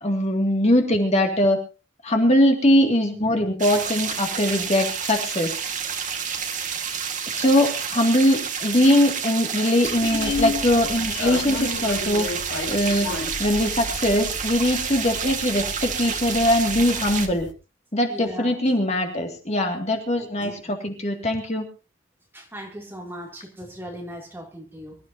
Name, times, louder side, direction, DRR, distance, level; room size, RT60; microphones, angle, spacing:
voice 1, 0.0-1.6 2.0-5.6 7.3-12.3 12.7-13.1 13.4-17.5 17.9-21.7, left 1 dB, 35° left, 2.3 m, -21 dB
sound 1, 3.6-17.3, right 7 dB, 40° right, 1.8 m, -29 dB
sound 2, 9.8-17.5, left 3 dB, 60° left, 1.7 m, -33 dB
voice 2, 18.1-18.5 20.4-20.8 22.3-25.0, equal, 10° right, 2.8 m, -38 dB
25.5 x 13.5 x 2.8 m
head